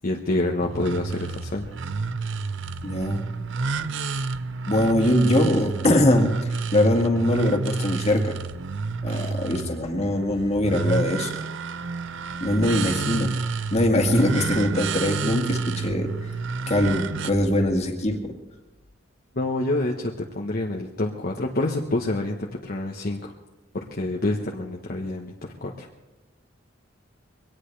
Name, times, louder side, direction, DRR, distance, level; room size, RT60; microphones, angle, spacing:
voice 1, 0.0-1.7 19.3-23.3 23.7-25.9, left 2 dB, 50° left, 0 dB, 1.1 m, -27 dB
sound 1, 0.6-17.3, right 4 dB, 65° right, 0.6 m, -29 dB
voice 2, 2.8-3.2 4.7-6.3 6.7-8.4 9.0-11.3 12.4-13.3 13.7-16.1 16.7-18.3, left 1 dB, 35° left, 2 dB, 2.0 m, -22 dB
23.0 x 18.0 x 3.3 m, 1.0 s
head